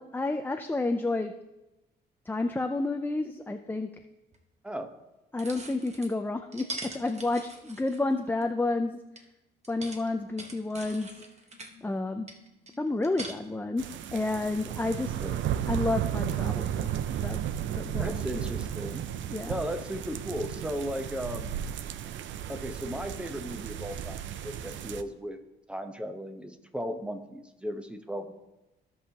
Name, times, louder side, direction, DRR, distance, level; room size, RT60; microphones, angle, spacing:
voice 1, 0.0-1.4 2.3-3.9 5.3-9.0 9.7-11.2 11.8-12.3 12.8-15.1 15.7-16.9 17.2-17.4 17.7-18.1 19.3-19.6, left 2 dB, 10° left, 5 dB, 0.5 m, -30 dB
sound 1, 4.3-4.4 5.4-6.1 6.5-8.4 9.2-9.3 9.6-11.7 12.3-13.3, right 2 dB, 35° right, 1.2 m, -42 dB
voice 2, 4.6-5.0 15.2-15.4 17.9-19.0 19.5-21.7 22.5-25.4 25.7-28.3, equal, 5° right, 7 dB, 0.9 m, -36 dB
sound 2, 9.8-17.2, left 6 dB, 90° left, 1.7 m, -58 dB
sound 3, 13.8-25.0, right 10 dB, 70° right, 0.5 m, -34 dB
16.0 x 5.5 x 2.9 m, 0.99 s
cardioid pair, 90°, 20 cm